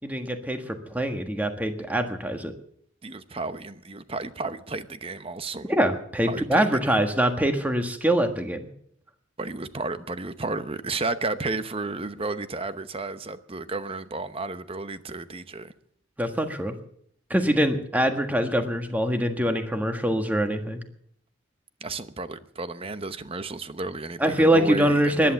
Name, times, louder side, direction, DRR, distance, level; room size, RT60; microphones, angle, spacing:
voice 1, 0.0-2.5 5.6-8.7 16.2-16.7 17.3-20.8 24.2-25.3, right 1 dB, 10° right, 6 dB, 1.6 m, -24 dB
voice 2, 3.0-5.7 6.3-7.1 9.4-15.7 21.8-25.3, right 3 dB, 30° right, 12 dB, 0.9 m, -33 dB
15.5 x 11.5 x 7.1 m, 0.65 s
head